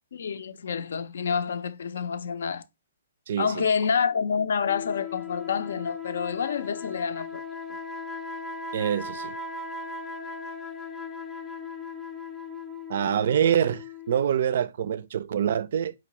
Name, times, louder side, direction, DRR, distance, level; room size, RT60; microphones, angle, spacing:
voice 1, 0.1-2.6 3.4-7.4, left 6 dB, 65° left, 0.4 m, -28 dB
voice 2, 3.3-3.7 8.7-9.3 12.9-15.9, right 9 dB, 55° right, 0.4 m, -25 dB
sound 1, 4.6-14.3, left 4 dB, 5° left, 0.6 m, -38 dB
5.1 x 2.9 x 2.9 m
figure-of-eight pair, 130°, 0 cm